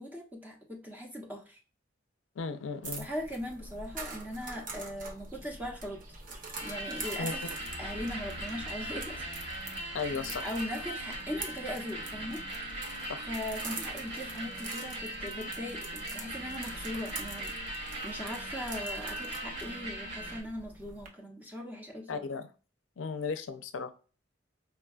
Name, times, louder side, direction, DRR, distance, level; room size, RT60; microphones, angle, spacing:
voice 1, 0.0-1.6 3.0-6.0 6.6-9.2 10.1-12.4 13.3-22.3, left 1 dB, 10° right, 0 dB, 0.8 m, -40 dB
voice 2, 2.4-3.1 7.2-7.3 9.9-10.5 13.1-13.3 22.1-22.5 23.0-23.9, left 5 dB, 85° left, 9 dB, 0.5 m, -35 dB
sound 1, 2.8-21.1, right 3 dB, 45° right, 0.7 m, -45 dB
sound 2, 6.6-20.4, right 1 dB, 60° right, 1.7 m, -39 dB
4.5 x 2.3 x 2.3 m, 0.35 s
head